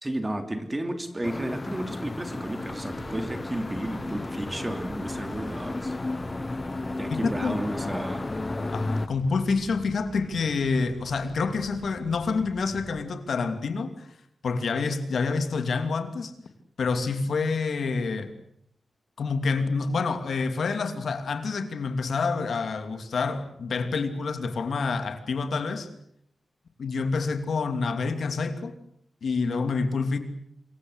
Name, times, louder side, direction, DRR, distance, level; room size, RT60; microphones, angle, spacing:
voice 1, 0.0-6.0 6.9-8.3, right 1 dB, 15° right, 7 dB, 3.0 m, -32 dB
sound 1, 1.2-9.1, left 2 dB, 25° left, 1.0 m, -33 dB
sound 2, 2.8-13.0, right 2 dB, 55° right, 4.8 m, -46 dB
voice 2, 7.1-7.6 8.7-14.1 14.4-16.3 16.8-18.3 19.2-25.9 26.8-28.7 29.2-30.2, left 4 dB, 70° left, 9 dB, 2.8 m, -27 dB
27.0 x 23.0 x 8.2 m, 0.74 s
wide cardioid pair, 125°, 0 cm